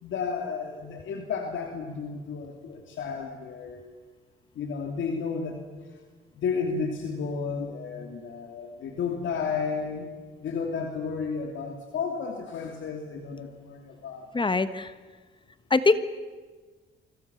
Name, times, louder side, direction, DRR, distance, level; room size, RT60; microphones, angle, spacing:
voice 1, 0.0-3.9 4.5-5.6 6.4-10.1 10.4-14.3, left 5 dB, 70° left, 3 dB, 3.0 m, -32 dB
voice 2, 14.3-14.9 15.7-16.0, left 3 dB, 25° left, 12 dB, 1.3 m, -22 dB
29.5 x 25.0 x 7.1 m, 1.4 s
cardioid pair, 90°, 20 cm